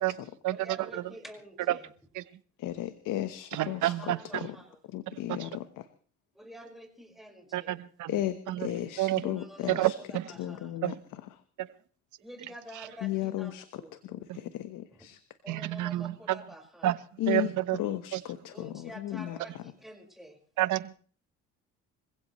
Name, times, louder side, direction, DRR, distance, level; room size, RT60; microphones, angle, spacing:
voice 1, 0.5-1.9 3.6-4.8 6.3-7.8 9.2-10.7 12.2-14.0 15.4-17.0 18.5-20.4, equal, ahead, 5.1 m, -48 dB
voice 2, 2.6-4.6 4.9-5.9 8.1-10.0 10.4-11.4 13.0-15.2 17.2-19.6, left 13 dB, 75° left, 1.2 m, -35 dB
voice 3, 3.5-4.2 5.3-5.4 7.5-8.1 8.5-8.7 9.0-9.2 9.7-10.2 10.8-10.9 15.5-16.4 16.8-16.9 17.3-17.8 20.6-21.0, right 15 dB, 65° right, 1.1 m, -28 dB
26.5 x 16.0 x 3.2 m
cardioid pair, 95°, 32 cm